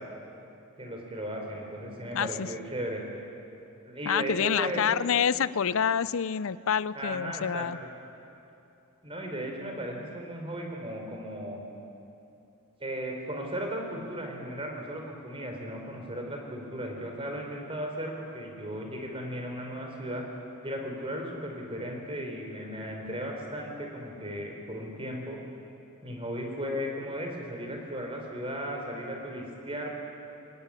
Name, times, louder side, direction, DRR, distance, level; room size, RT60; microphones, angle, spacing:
voice 1, 0.8-3.0 3.8-4.8 6.9-7.9 9.0-11.6 12.8-20.2 20.6-25.4 26.0-29.9, equal, 25° right, 1 dB, 4.0 m, -36 dB
voice 2, 2.1-2.5 4.1-7.8, left 7 dB, 65° left, 18 dB, 0.5 m, -27 dB
22.0 x 19.0 x 9.9 m, 2.8 s
head